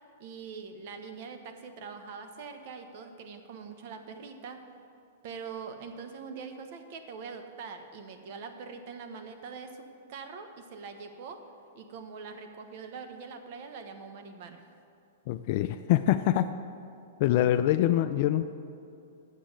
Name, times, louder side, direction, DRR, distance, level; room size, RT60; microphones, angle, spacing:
voice 1, 0.2-4.7 5.2-11.4 11.7-14.6, right 5 dB, 55° right, 6 dB, 1.0 m, -43 dB
voice 2, 15.3-16.5 17.2-18.5, left 13 dB, 50° left, 9 dB, 0.3 m, -25 dB
7.3 x 7.1 x 7.9 m, 2.6 s
hypercardioid pair, 120°, 0 cm